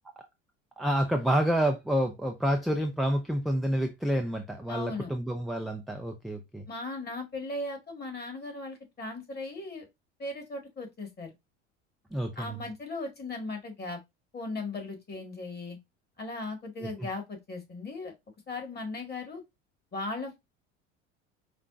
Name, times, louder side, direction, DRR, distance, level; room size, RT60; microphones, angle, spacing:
voice 1, 0.8-6.7 12.1-12.6 17.0-17.1, equal, ahead, 0.3 m, -28 dB
voice 2, 4.7-5.1 6.7-9.9 10.2-11.3 12.3-14.0 14.3-15.8 16.2-18.1 18.5-19.4 19.9-20.4, left 2 dB, 25° left, 1.7 m, -37 dB
5.0 x 2.2 x 2.4 m
hypercardioid pair, 70°, 36 cm